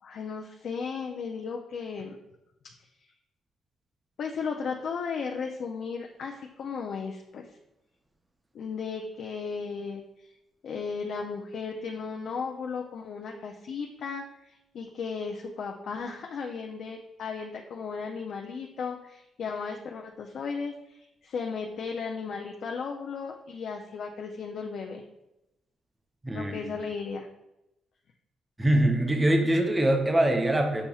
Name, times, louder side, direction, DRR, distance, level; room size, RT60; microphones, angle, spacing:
voice 1, 0.0-2.2 2.6-2.7 4.2-7.5 8.5-10.3 10.6-25.0 26.3-27.3, left 5 dB, 65° left, 1 dB, 0.4 m, -35 dB
voice 2, 26.2-26.6 28.6-30.9, right 1 dB, 15° right, 3 dB, 0.6 m, -23 dB
6.7 x 2.8 x 2.3 m, 0.92 s
cardioid pair, 90°, 0 cm